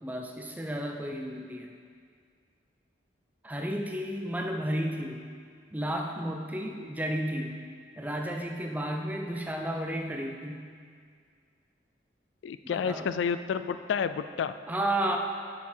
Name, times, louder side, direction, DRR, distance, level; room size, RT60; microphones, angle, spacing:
voice 1, 0.0-1.7 3.4-5.2 5.7-7.6 8.0-10.7 12.6-13.1 14.7-15.2, right 1 dB, 10° right, 2 dB, 0.5 m, -32 dB
voice 2, 12.4-14.6, left 6 dB, 85° left, 12 dB, 0.3 m, -30 dB
7.1 x 6.6 x 4.4 m, 2.1 s
head